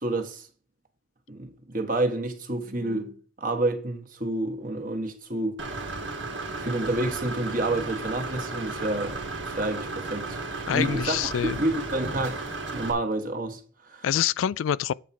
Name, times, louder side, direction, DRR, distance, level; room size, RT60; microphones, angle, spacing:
voice 1, 0.0-0.5 1.3-5.6 6.6-9.2 9.5-10.4 10.7-12.4 12.7-14.0, right 2 dB, 45° right, 1.4 m, -29 dB
Engine / Mechanisms, 5.6-12.9, right 3 dB, 75° right, 1.7 m, -34 dB
voice 2, 10.7-11.6 14.0-14.9, left 9 dB, 90° left, 0.3 m, -26 dB
8.3 x 4.6 x 5.7 m
head